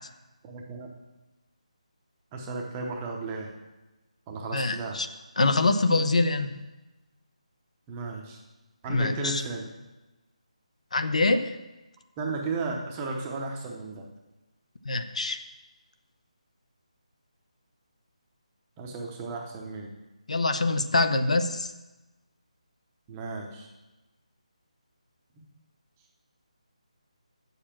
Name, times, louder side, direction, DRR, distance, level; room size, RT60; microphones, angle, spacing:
voice 1, 0.4-0.9 2.3-3.5 4.3-5.0 7.9-8.4 8.8-9.7 12.2-14.1 18.8-19.9 23.1-23.7 25.4-25.5, right 3 dB, 10° right, 0 dB, 0.7 m, -34 dB
voice 2, 4.5-5.1 5.4-6.5 8.9-9.4 10.9-11.6 14.8-15.4 20.3-21.7, left 3 dB, 70° left, 9 dB, 0.8 m, -24 dB
7.8 x 6.9 x 7.4 m, 1.1 s
hypercardioid pair, 175°, 4 cm